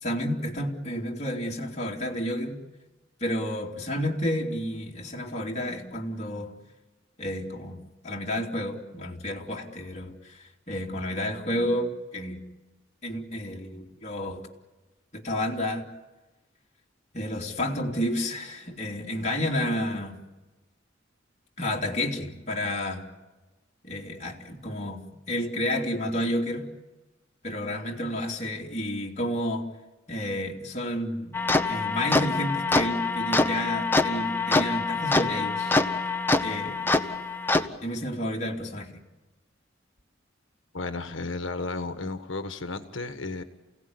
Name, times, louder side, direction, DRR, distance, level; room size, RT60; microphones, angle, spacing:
voice 1, 0.0-2.6 3.2-6.5 7.2-12.4 13.0-14.4 15.1-15.9 17.1-20.2 21.6-23.0 23.8-26.7 27.4-29.7 30.1-31.4 31.7-36.0 36.4-36.8 37.8-38.9, left 1 dB, 35° left, -1 dB, 2.9 m, -31 dB
sound 1, 31.3-37.7, left 3 dB, 10° left, 1.0 m, -25 dB
voice 2, 40.7-43.4, left 3 dB, 70° left, 8 dB, 1.5 m, -33 dB
28.5 x 17.5 x 9.8 m, 1.2 s
head